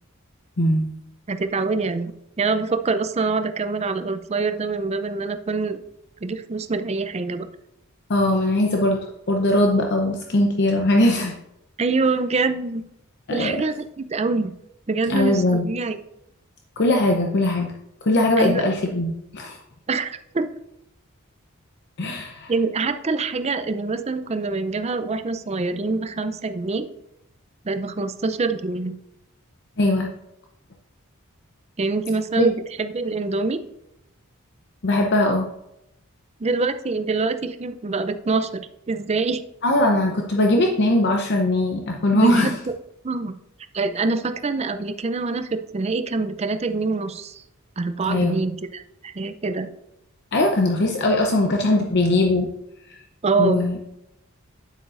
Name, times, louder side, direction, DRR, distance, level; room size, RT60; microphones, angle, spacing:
voice 1, 0.6-0.9 8.1-11.3 13.3-13.6 15.1-15.6 16.8-17.7 18.0-19.6 22.0-22.5 29.8-30.1 32.4-32.5 34.8-35.5 39.6-42.5 48.1-48.4 50.3-52.5 52.9-53.0 53.4-53.8, left 1 dB, 50° left, 2 dB, 0.7 m, -20 dB
voice 2, 1.3-5.8 6.2-7.5 11.8-12.8 13.3-14.5 14.9-15.9 18.4-18.6 19.9-20.5 22.5-26.9 27.6-29.0 31.8-33.6 36.4-39.4 42.2-42.5 43.0-43.3 43.7-47.4 47.8-49.7 53.2-53.7, right 3 dB, 30° right, 10 dB, 0.5 m, -25 dB
9.2 x 8.0 x 2.5 m, 0.82 s
head